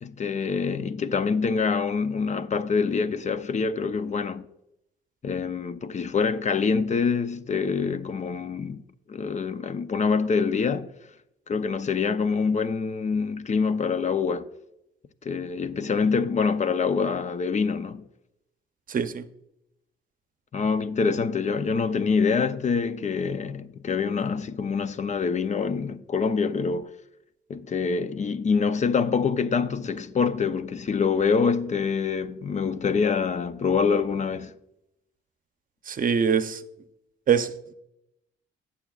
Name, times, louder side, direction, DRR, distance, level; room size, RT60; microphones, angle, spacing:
voice 1, 0.0-4.5 5.2-8.8 9.1-10.9 11.5-14.5 15.2-18.0 20.5-26.9 27.5-34.5, left 5 dB, 35° left, 0.6 m, -25 dB
voice 2, 18.9-19.2 35.9-36.6 37.3-37.7, right 7 dB, 45° right, 0.7 m, -24 dB
15.0 x 7.0 x 2.4 m
cardioid pair, 90°, 20 cm